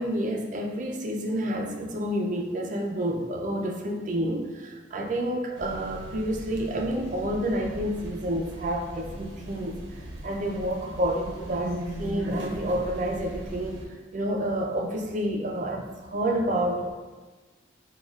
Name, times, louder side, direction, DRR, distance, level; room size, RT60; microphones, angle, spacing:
voice 1, 0.0-9.8 10.2-13.8 14.1-16.9, right 1 dB, 40° right, 1 dB, 0.4 m, -29 dB
sound 1, 5.5-13.9, right 1 dB, 85° right, 0.7 m, -38 dB
6.1 x 2.3 x 2.3 m, 1.3 s
head